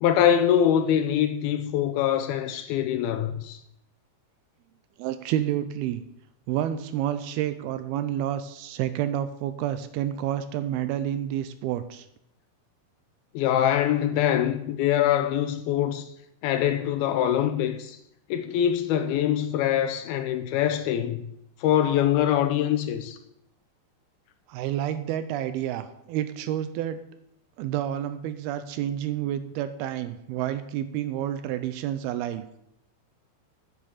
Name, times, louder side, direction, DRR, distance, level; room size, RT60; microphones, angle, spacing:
voice 1, 0.0-3.6 13.3-16.1 16.4-18.0 18.3-21.2 21.6-23.2, left 10 dB, 80° left, 2.4 m, -24 dB
voice 2, 5.0-6.0 6.5-12.1 24.5-27.0 27.6-32.4, right 11 dB, 80° right, 2.4 m, -29 dB
9.5 x 8.0 x 7.2 m
omnidirectional pair, 4.8 m